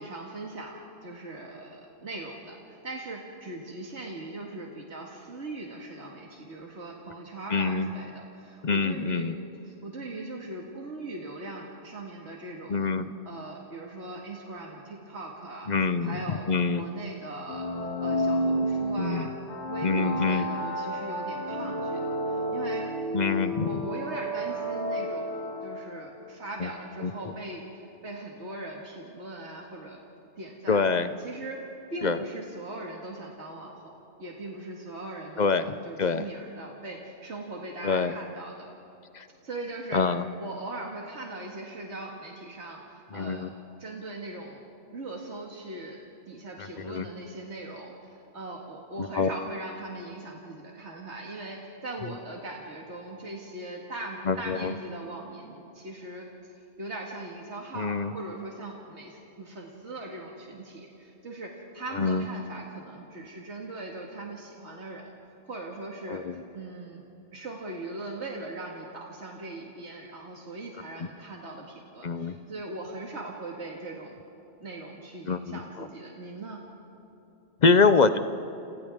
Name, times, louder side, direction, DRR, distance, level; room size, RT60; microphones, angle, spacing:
voice 1, 0.0-9.3 9.6-12.9 13.2-15.7 16.0-17.7 18.0-19.3 19.7-22.9 23.3-25.3 25.6-30.0 30.4-30.8 31.2-31.6 31.9-38.7 39.4-40.0 40.4-43.4 43.8-44.6 44.9-46.0 46.3-56.3 56.8-65.1 65.5-66.2 66.5-67.0 67.3-74.2 74.6-76.6, right 2 dB, 85° right, -1 dB, 2.2 m, -40 dB
voice 2, 7.5-7.9 8.6-9.4 12.7-13.1 15.7-16.8 19.0-19.3 19.8-20.5 23.1-23.8 26.6-26.7 27.0-27.1 30.7-31.1 32.0-32.2 35.4-35.6 36.0-36.2 37.8-38.1 39.1-39.2 39.9-40.2 43.1-43.5 46.6-47.1 49.0-49.3 52.1-52.2 54.3-54.7 57.7-58.1 61.9-62.3 66.1-66.3 72.0-72.3 75.2-75.9 77.6-78.2, left 4 dB, 45° left, 11 dB, 0.8 m, -25 dB
sound 1, 17.5-26.1, equal, 85° left, 2.8 m, -31 dB
29.0 x 29.0 x 3.6 m, 2.9 s
omnidirectional pair, 1.1 m